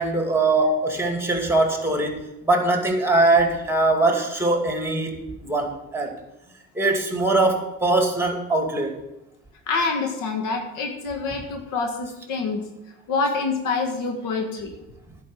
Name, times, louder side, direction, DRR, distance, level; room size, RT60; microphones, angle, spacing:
voice 1, 0.0-6.1 6.7-8.9, right 2 dB, 10° right, 3 dB, 2.4 m, -22 dB
voice 2, 9.7-12.6 13.1-14.7, left 4 dB, 85° left, 4 dB, 1.8 m, -26 dB
11.0 x 5.2 x 8.5 m, 0.94 s
cardioid pair, 85°, 31 cm